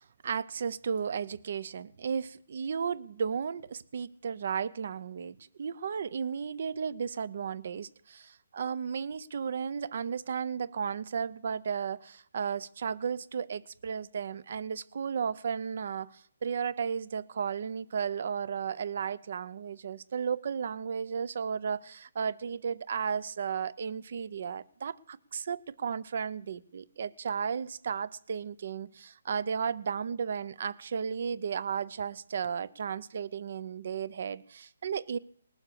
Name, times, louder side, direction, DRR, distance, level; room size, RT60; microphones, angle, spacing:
voice 1, 0.0-35.2, right 6 dB, 40° right, 0.5 m, -34 dB
20.0 x 7.2 x 6.8 m
hypercardioid pair, 175°, 0 cm